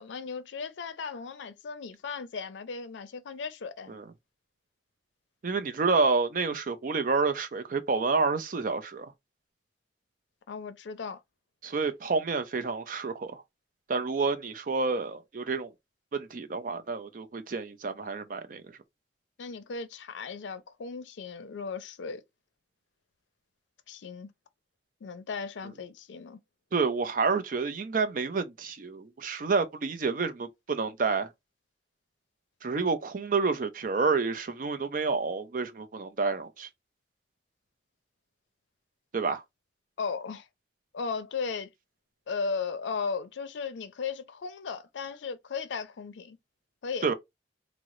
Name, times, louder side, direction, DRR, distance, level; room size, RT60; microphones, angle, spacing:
voice 1, 0.0-4.0 10.5-11.2 19.4-22.2 23.9-24.3 25.0-26.4 40.0-40.5 40.9-41.7 42.3-46.4 46.8-47.1, left 5 dB, 85° left, 0.5 m, -36 dB
voice 2, 5.4-9.1 11.6-13.4 13.9-15.7 16.1-18.6 26.7-31.3 32.6-36.7 39.1-39.4 47.0-47.1, right 4 dB, 50° right, 0.5 m, -29 dB
3.6 x 2.0 x 3.0 m
head